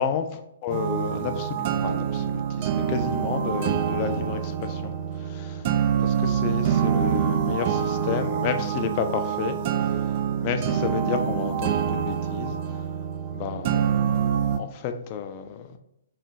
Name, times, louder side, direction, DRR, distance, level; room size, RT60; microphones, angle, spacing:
voice 1, 0.0-5.6 6.0-9.6 10.4-12.6 13.3-15.8, left 7 dB, 35° left, 0.4 m, -31 dB
sound 1, 0.7-14.6, right 8 dB, 40° right, 0.3 m, -26 dB
3.2 x 2.9 x 4.0 m
figure-of-eight pair, 125°, 0 cm